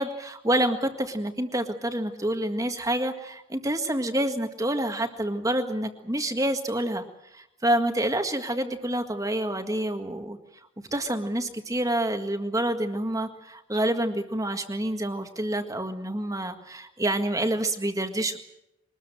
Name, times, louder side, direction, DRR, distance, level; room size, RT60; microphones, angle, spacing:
voice 1, 0.0-7.0 7.3-10.4 10.9-18.4, right 1 dB, 15° right, 6 dB, 1.8 m, -27 dB
23.0 x 20.0 x 7.8 m, 0.85 s
head